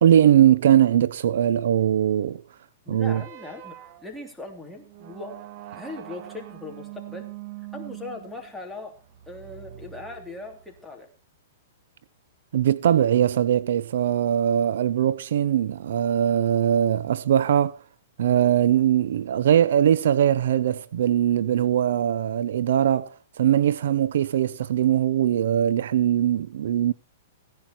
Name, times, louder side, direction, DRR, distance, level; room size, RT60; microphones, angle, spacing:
voice 1, 0.0-2.4 2.9-3.2 12.5-17.8 18.2-26.9, right 10 dB, 70° right, 0.6 m, -21 dB
voice 2, 2.8-3.7 4.0-5.4 5.7-7.3 7.7-9.0 9.3-11.1, left 2 dB, ahead, 3.1 m, -39 dB
sound 1, 3.0-10.8, right 13 dB, 45° right, 1.4 m, -43 dB
16.0 x 10.5 x 4.4 m
hypercardioid pair, 145°, 0 cm